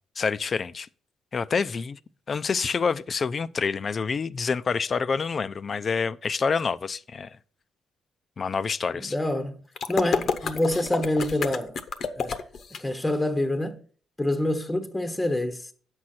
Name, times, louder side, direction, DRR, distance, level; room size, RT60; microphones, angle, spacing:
voice 1, 0.2-0.9 1.3-2.0 2.3-7.4 8.4-9.1, left 5 dB, 40° left, 0.4 m, -27 dB
voice 2, 8.9-9.6 9.9-11.8 12.1-12.4 12.8-13.8 14.2-15.7, left 1 dB, 10° left, 0.8 m, -26 dB
sound 1, 9.8-12.8, left 6 dB, 60° left, 0.8 m, -29 dB
8.5 x 6.3 x 4.2 m
cardioid pair, 90°, 0 cm